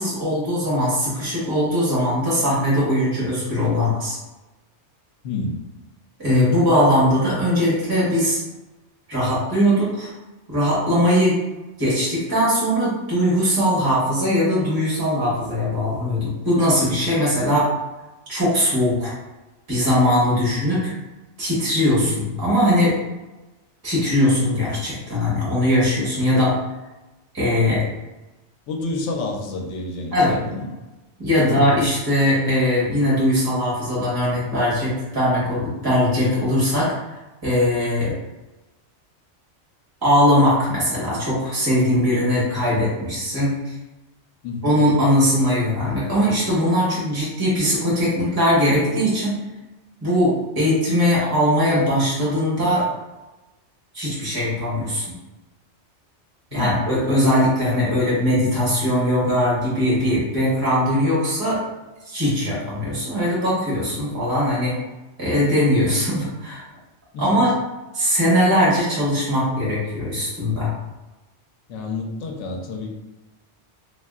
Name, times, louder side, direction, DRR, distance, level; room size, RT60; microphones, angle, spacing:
voice 1, 0.0-4.2 6.2-8.4 9.1-10.1 10.5-11.4 11.8-17.7 18.3-19.1 19.7-20.9 21.4-23.0 23.8-26.5 27.3-27.8 30.1-30.4 31.2-36.9 37.4-38.1 40.0-43.7 44.6-49.4 50.0-52.9 53.9-55.0 56.5-61.6 62.1-64.7 65.2-66.6 67.2-67.5 67.9-70.7, equal, 20° right, -8 dB, 1.1 m, -20 dB
voice 2, 5.2-5.6 20.3-20.5 28.7-30.7 31.4-31.6 44.4-44.7 56.5-56.9 64.1-64.2 67.1-67.4 71.7-73.0, left 3 dB, 80° left, 1 dB, 0.9 m, -29 dB
3.4 x 2.3 x 2.3 m, 1.1 s
omnidirectional pair, 1.2 m